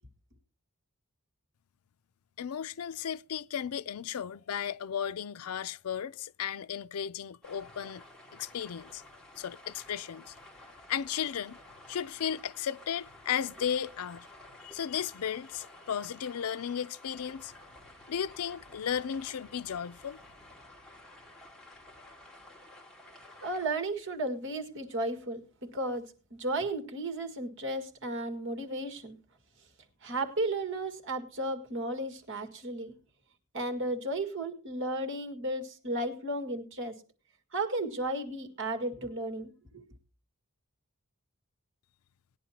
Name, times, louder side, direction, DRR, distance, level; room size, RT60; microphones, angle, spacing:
voice 1, 2.4-8.0 8.3-9.0 9.4-10.3 10.9-11.6 11.9-14.3 14.6-17.5 18.1-20.2, left 8 dB, 80° left, 0.5 m, -35 dB
sound 1, 7.4-23.7, left 1 dB, 5° left, 2.4 m, -52 dB
voice 2, 23.4-25.4 25.7-29.2 30.0-32.9 33.5-37.0 37.5-39.8, right 2 dB, 60° right, 1.9 m, -34 dB
19.0 x 10.0 x 2.9 m
head